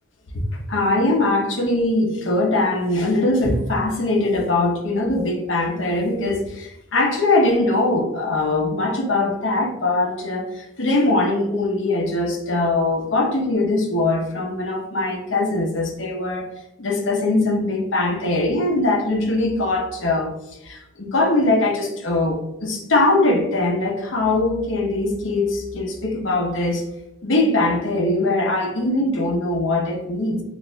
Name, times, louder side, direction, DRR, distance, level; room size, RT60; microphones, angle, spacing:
voice 1, 0.7-16.5 16.8-20.3 20.6-26.8 27.2-30.4, left 2 dB, 65° left, 0.9 m, -21 dB
6.4 x 2.7 x 2.2 m
head